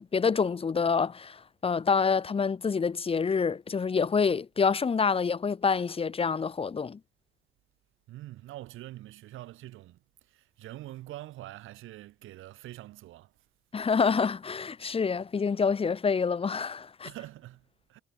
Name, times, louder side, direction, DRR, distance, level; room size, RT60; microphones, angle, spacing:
voice 1, 0.0-7.0 13.7-17.1, left 5 dB, 30° left, 0.8 m, -27 dB
voice 2, 8.1-13.3 17.0-18.0, right 15 dB, 90° right, 6.9 m, -45 dB
cardioid pair, 90°, 20 cm